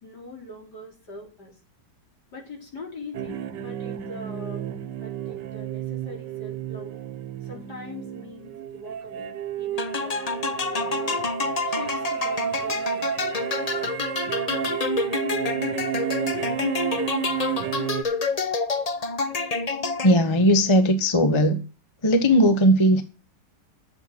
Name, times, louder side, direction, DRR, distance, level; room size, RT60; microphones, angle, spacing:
voice 1, 0.0-1.5 2.3-7.0 7.4-10.3 10.6-13.3, left 2 dB, 70° left, 4.7 m, -42 dB
sound 1, 3.1-18.0, right 10 dB, 85° right, 1.6 m, -31 dB
sound 2, 9.8-20.4, left 4 dB, 40° left, 0.6 m, -28 dB
voice 2, 20.0-21.6 22.0-23.0, equal, 20° left, 1.1 m, -18 dB
11.5 x 7.9 x 6.0 m
omnidirectional pair, 1.8 m